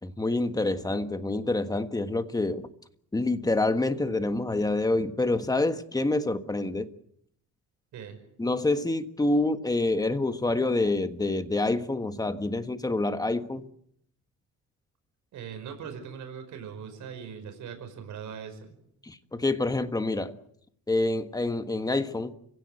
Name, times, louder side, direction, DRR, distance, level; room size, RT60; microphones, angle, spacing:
voice 1, 0.0-2.7 3.1-6.9 8.4-13.7 19.0-20.3 20.9-22.3, left 2 dB, 10° left, 9 dB, 1.5 m, -27 dB
voice 2, 15.3-18.8, right 7 dB, 70° right, 6 dB, 5.3 m, -40 dB
29.0 x 16.5 x 7.8 m, 0.71 s
cardioid pair, 130°, 31 cm